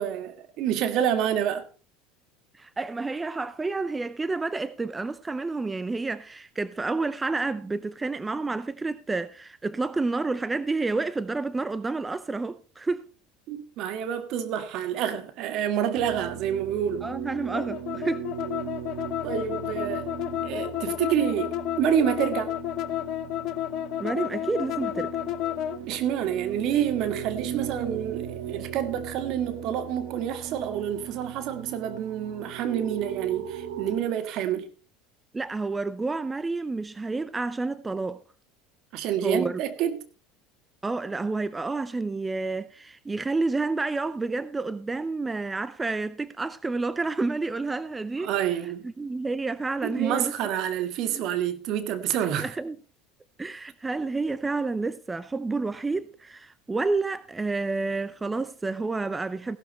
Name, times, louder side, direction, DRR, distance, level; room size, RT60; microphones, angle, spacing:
voice 1, 0.0-1.6 13.5-17.1 19.2-20.1 20.4-22.5 25.9-34.7 38.9-40.0 48.2-48.9 49.8-52.5, right 9 dB, 60° right, 1.7 m, -28 dB
voice 2, 2.5-13.1 17.0-18.3 24.0-25.2 35.3-38.2 39.2-39.6 40.8-48.3 48.8-50.3 51.1-51.2 52.4-52.8 53.4-59.6, right 3 dB, 15° right, 0.6 m, -29 dB
sound 1, 16.0-34.0, right 9 dB, 75° right, 2.0 m, -38 dB
sound 2, 17.5-25.8, left 13 dB, 55° left, 1.0 m, -31 dB
16.0 x 12.0 x 3.2 m
hypercardioid pair, 85°, 0 cm